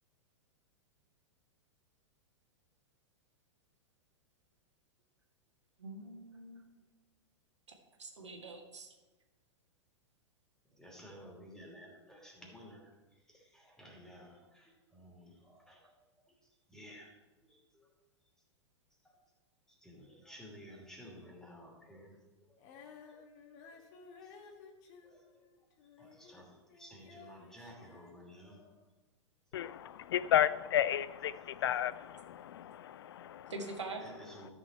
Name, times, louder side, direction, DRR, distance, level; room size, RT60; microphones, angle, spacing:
voice 1, 5.8-6.6 8.0-8.9 33.5-34.0, right 3 dB, 75° right, 2 dB, 1.8 m, -44 dB
voice 2, 10.8-12.9 13.3-15.8 16.7-17.1 17.5-17.9 19.0-19.1 19.7-22.2 22.5-22.6 23.1-23.2 25.0-25.2 26.0-28.6 29.5-29.7 34.0-34.5, equal, 5° left, -1 dB, 2.7 m, -54 dB
Female singing, 22.6-26.4 26.7-28.8, left 5 dB, 40° left, 1.6 m, -56 dB
voice 3, 29.5-33.5, left 11 dB, 55° left, 16 dB, 0.4 m, -33 dB
13.0 x 6.7 x 4.5 m, 1.2 s
figure-of-eight pair, 100°, 15 cm